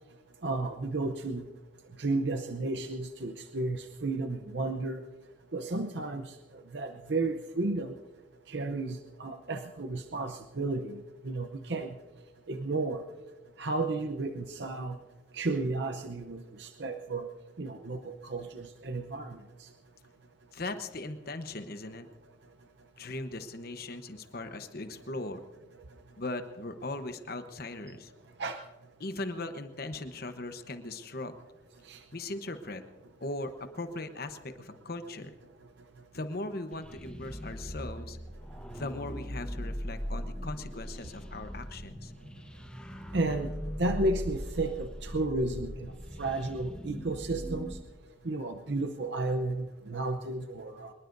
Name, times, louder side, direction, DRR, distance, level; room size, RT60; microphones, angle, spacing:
voice 1, 0.4-1.4 2.0-5.1 5.5-7.9 8.5-12.0 12.5-13.0 13.6-15.0 15.3-17.3 17.6-19.7 28.4-28.6 31.8-32.0 43.1-43.5 43.8-45.9 46.2-47.8 48.2-50.9, right 2 dB, 60° right, 6 dB, 0.7 m, -33 dB
voice 2, 20.5-22.1 23.0-25.4 26.2-28.1 29.0-31.3 32.1-32.8 33.2-35.4 36.1-38.2 38.7-42.1, left 2 dB, 50° left, 8 dB, 1.0 m, -39 dB
sound 1, 36.7-47.8, equal, 5° left, 0.9 m, -40 dB
24.5 x 21.0 x 2.6 m, 1.3 s
head